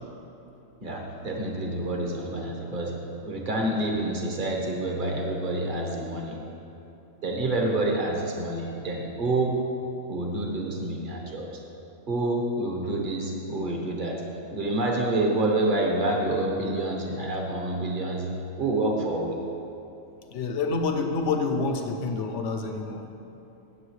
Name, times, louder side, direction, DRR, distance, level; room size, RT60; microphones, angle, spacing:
voice 1, 0.8-6.4 7.2-9.6 10.1-11.5 12.1-14.2 14.5-18.3 18.6-19.4, right 2 dB, 40° right, 0 dB, 1.3 m, -28 dB
voice 2, 20.3-23.0, left 4 dB, 65° left, 5 dB, 1.1 m, -27 dB
16.0 x 7.5 x 3.2 m, 2.9 s
omnidirectional pair, 1.4 m